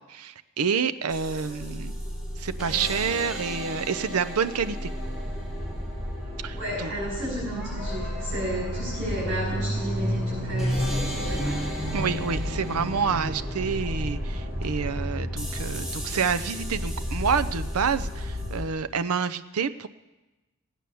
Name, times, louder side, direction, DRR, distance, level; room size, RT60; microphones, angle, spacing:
voice 1, 0.1-2.0 2.4-4.9 6.4-6.9 11.9-19.9, right 6 dB, 80° right, 13 dB, 0.6 m, -28 dB
sound 1, 1.1-18.6, equal, 5° right, 3.4 m, -35 dB
sound 2, 5.0-18.6, equal, 30° right, 4.5 m, -32 dB
voice 2, 6.5-11.7, equal, 60° right, -7 dB, 5.8 m, -33 dB
16.0 x 9.1 x 6.9 m, 1.1 s
head